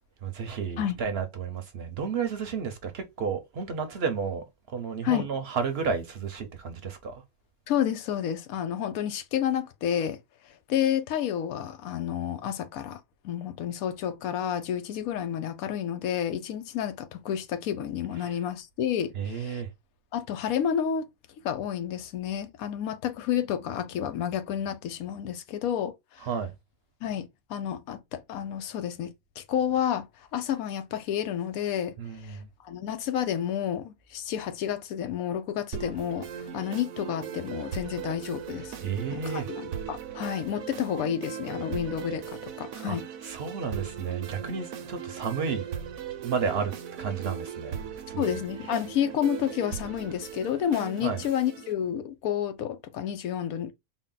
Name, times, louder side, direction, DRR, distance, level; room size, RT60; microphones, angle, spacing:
voice 1, 0.2-7.2 18.2-18.4 19.1-19.7 26.2-26.5 32.0-32.5 38.8-39.5 42.9-45.7 46.2-47.8 48.1-48.4 51.0-51.2, right 6 dB, 55° right, 0.8 m, -32 dB
voice 2, 7.7-10.2 10.7-19.6 20.1-21.0 21.4-26.3 27.0-30.1 30.3-38.7 39.1-43.0 48.2-53.7, left 9 dB, 80° left, 1.1 m, -30 dB
sound 1, 35.7-51.7, right 8 dB, 75° right, 1.1 m, -38 dB
4.1 x 2.1 x 3.7 m
omnidirectional pair, 1.5 m